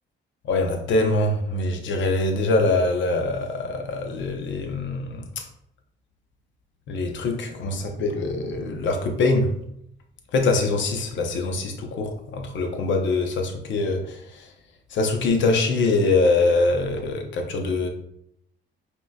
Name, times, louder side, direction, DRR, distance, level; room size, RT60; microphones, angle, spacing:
voice 1, 0.4-5.5 6.9-9.5 10.3-14.5 14.9-17.9, left 3 dB, 70° left, 4 dB, 0.8 m, -23 dB
5.3 x 3.1 x 2.3 m, 0.72 s
cardioid pair, 90°, 20 cm